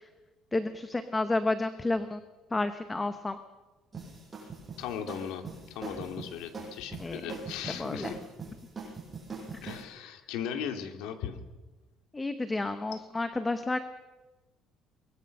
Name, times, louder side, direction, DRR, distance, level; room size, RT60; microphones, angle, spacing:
voice 1, 0.5-2.2 2.5-3.4 7.0-7.2 7.8-8.1 9.6-9.7 12.1-13.8, left 2 dB, 10° left, 9 dB, 0.9 m, -30 dB
sound 1, 3.9-9.8, right 4 dB, 15° right, 7.9 m, -42 dB
voice 2, 4.8-5.4 5.7-8.2 9.6-11.4 12.9-13.0, left 8 dB, 80° left, 6 dB, 2.7 m, -37 dB
23.5 x 21.0 x 6.6 m, 1.2 s
cardioid pair, 175°, 0 cm